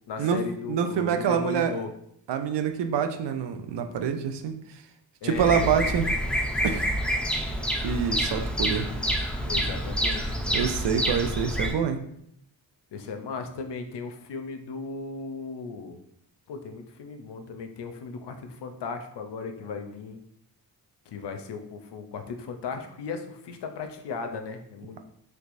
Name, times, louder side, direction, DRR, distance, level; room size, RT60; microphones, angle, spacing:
voice 1, 0.1-1.9 5.2-5.7 9.5-10.6 12.9-16.0 16.5-20.2 21.1-25.0, left 5 dB, 65° left, 6 dB, 0.6 m, -36 dB
voice 2, 0.7-1.7 2.3-4.5 5.2-6.1 6.6-6.9 7.8-8.9 10.5-12.0, right 7 dB, 70° right, 7 dB, 0.5 m, -26 dB
Bird vocalization bird call bird song, 5.3-11.7, equal, ahead, 0.4 m, -27 dB
3.3 x 3.2 x 2.5 m, 0.72 s
cardioid pair, 50°, 44 cm